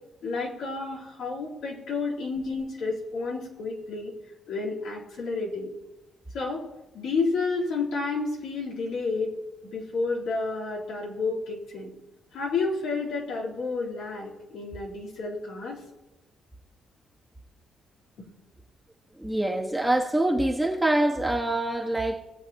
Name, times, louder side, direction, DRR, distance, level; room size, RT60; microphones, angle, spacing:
voice 1, 0.2-4.1 4.5-5.7 6.3-6.6 6.9-9.3 9.6-11.9 12.3-15.8, left 3 dB, 80° left, -6 dB, 3.7 m, -30 dB
voice 2, 19.2-22.2, right 1 dB, 5° right, 0 dB, 1.5 m, -25 dB
20.0 x 7.8 x 3.0 m, 0.97 s
cardioid pair, 90°, 0 cm